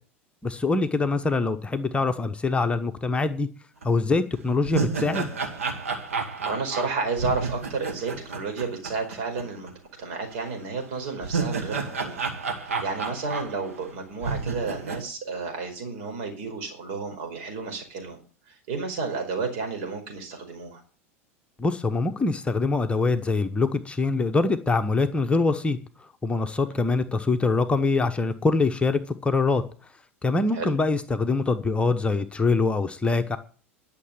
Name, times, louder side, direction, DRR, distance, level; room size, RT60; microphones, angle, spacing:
voice 1, 0.4-3.5 3.8-5.3 21.6-25.8 26.2-29.6 30.2-33.4, left 3 dB, 15° left, 1.1 m, -24 dB
sound 1, 3.8-3.9 4.4-9.4 9.7-9.8 10.9-13.9 14.2-15.0, right 4 dB, 80° right, 2.1 m, -31 dB
voice 2, 6.4-9.7 10.0-12.2 12.6-18.2 18.4-20.8 30.5-30.7, right 4 dB, 60° right, 4.9 m, -31 dB
11.5 x 6.9 x 9.3 m
figure-of-eight pair, 80°, 7 cm